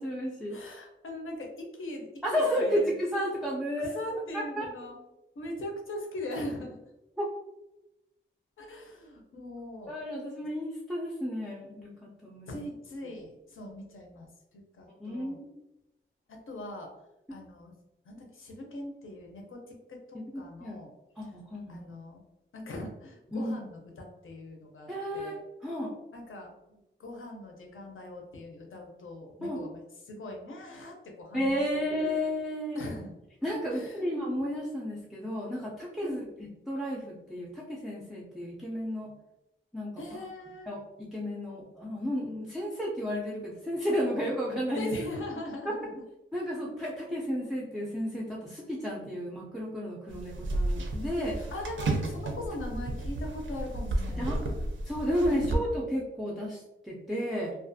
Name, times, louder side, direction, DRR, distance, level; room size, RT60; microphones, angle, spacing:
voice 1, 0.0-0.6 2.2-4.0 4.3-4.7 7.2-7.3 9.9-12.6 15.0-15.5 20.1-20.8 21.2-21.8 23.3-23.5 24.9-25.4 25.6-25.9 29.4-29.6 31.3-32.8 33.4-39.1 39.7-39.9 40.7-44.9 46.3-51.4 54.2-54.4 54.9-57.5, equal, ahead, -5 dB, 0.3 m, -32 dB
voice 2, 0.5-3.0 3.8-5.0 5.4-6.7 8.6-9.9 12.5-14.3 14.8-15.4 16.3-16.9 17.3-17.7 18.1-20.0 20.4-20.9 21.2-21.3 21.7-22.2 22.5-25.4 26.1-32.1 32.7-33.2 33.7-34.1 36.0-36.2 40.0-40.7 44.8-46.0 51.3-54.3 55.3-55.6, left 1 dB, 75° left, 1 dB, 0.6 m, -40 dB
sound 1, 50.1-55.6, right 2 dB, 65° right, 0.4 m, -33 dB
2.4 x 2.3 x 2.6 m, 0.93 s
wide cardioid pair, 140°, 21 cm